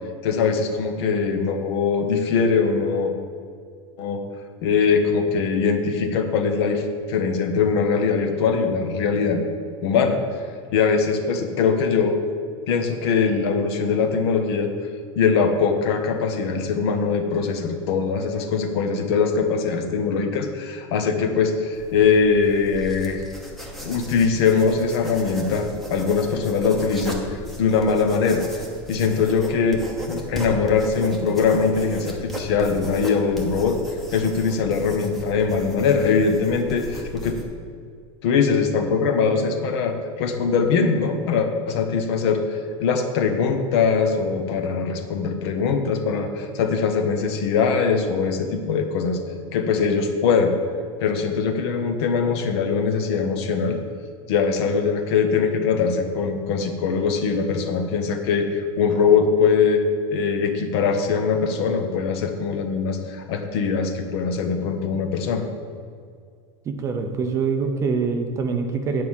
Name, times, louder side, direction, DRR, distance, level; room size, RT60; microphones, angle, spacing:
voice 1, 0.2-3.1 4.0-4.2 4.6-9.4 9.8-10.2 10.7-12.2 12.7-14.7 15.2-23.2 23.8-29.8 30.1-33.8 34.1-37.4 38.2-42.4 42.8-49.2 49.5-50.5 51.0-53.8 54.3-59.8 60.1-65.4, left 5 dB, 60° left, 6 dB, 1.1 m, -22 dB
sound 1, 21.7-37.4, equal, ahead, 0.9 m, -36 dB
voice 2, 66.7-69.0, right 5 dB, 20° right, 5 dB, 0.5 m, -24 dB
9.6 x 4.8 x 7.3 m, 2.3 s
supercardioid pair, 170°, 16 cm